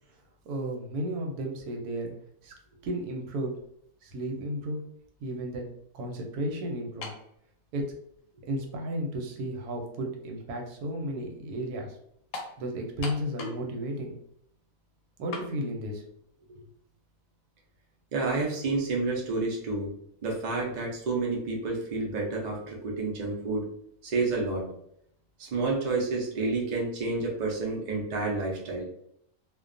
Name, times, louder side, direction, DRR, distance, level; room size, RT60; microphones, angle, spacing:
voice 1, 0.4-2.1 2.4-2.5 2.8-3.6 4.0-4.8 5.2-5.7 5.9-7.1 7.7-7.9 8.3-12.0 12.6-14.2 15.2-16.0 16.5-16.7, right 1 dB, 85° right, 2 dB, 1.1 m, -33 dB
sound 1, 7.0-7.3 8.2-8.3 12.3-12.6 13.0-13.7 14.0-14.1 15.3-15.5, left 3 dB, 70° left, 0.8 m, -37 dB
voice 2, 18.1-19.9 20.2-23.7 24.0-24.7 25.4-28.8, right 3 dB, 65° right, -2 dB, 0.4 m, -29 dB
2.5 x 2.2 x 2.5 m, 0.71 s
omnidirectional pair, 1.6 m